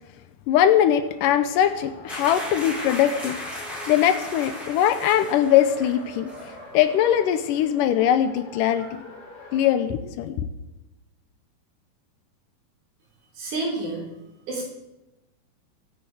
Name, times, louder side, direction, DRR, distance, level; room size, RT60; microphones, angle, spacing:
voice 1, 0.5-3.4 3.9-6.3 6.7-9.0 9.5-10.4, left 10 dB, 75° left, 11 dB, 2.1 m, -21 dB
Race car auto racing, 0.6-9.8, left 2 dB, 30° left, 3.3 m, -44 dB
sound 1, 2.1-6.0 6.3-6.5, left 1 dB, ahead, 4.0 m, -36 dB
voice 2, 13.4-14.1 14.5-14.7, right 2 dB, 85° right, -3 dB, 5.5 m, -29 dB
23.5 x 8.8 x 4.7 m, 1.0 s
omnidirectional pair, 4.1 m